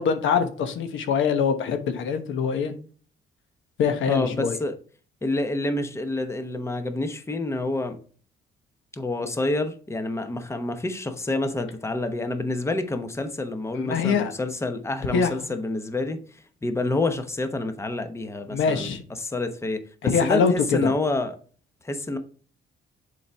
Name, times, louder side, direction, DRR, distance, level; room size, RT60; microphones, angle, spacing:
voice 1, 0.0-2.7 3.8-4.6 13.7-14.3 15.1-15.3 18.5-19.0 20.0-20.5 20.8-20.9, left 6 dB, 75° left, 1.0 m, -23 dB
voice 2, 4.1-4.7 5.2-8.0 8.9-18.9 19.2-21.4 21.8-22.2, left 2 dB, 15° left, 0.8 m, -28 dB
7.0 x 4.8 x 3.4 m
cardioid pair, 90°, 20 cm